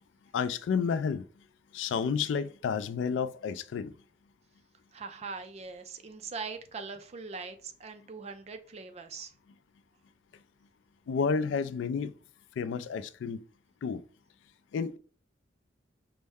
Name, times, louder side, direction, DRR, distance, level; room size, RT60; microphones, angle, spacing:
voice 1, 0.3-1.2 1.7-3.9 11.1-12.1 12.6-13.4 13.8-14.0 14.7-15.0, left 6 dB, 85° left, 0.3 m, -30 dB
voice 2, 4.9-9.3, right 4 dB, 35° right, 0.4 m, -41 dB
5.2 x 2.1 x 3.4 m
head